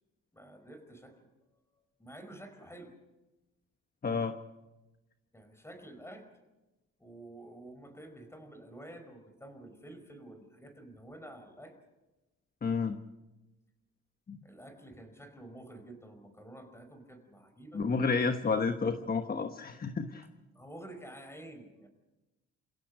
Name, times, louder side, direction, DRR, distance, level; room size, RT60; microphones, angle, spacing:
voice 1, 0.3-1.3 2.0-2.9 5.3-6.3 7.0-11.7 14.4-17.8 20.5-21.9, right 1 dB, 10° left, 7 dB, 5.0 m, -49 dB
voice 2, 4.0-4.3 12.6-13.0 14.3-14.4 17.7-20.3, left 4 dB, 30° left, 7 dB, 1.2 m, -30 dB
29.0 x 16.5 x 6.4 m, 1.0 s
cardioid pair, 90°, 30 cm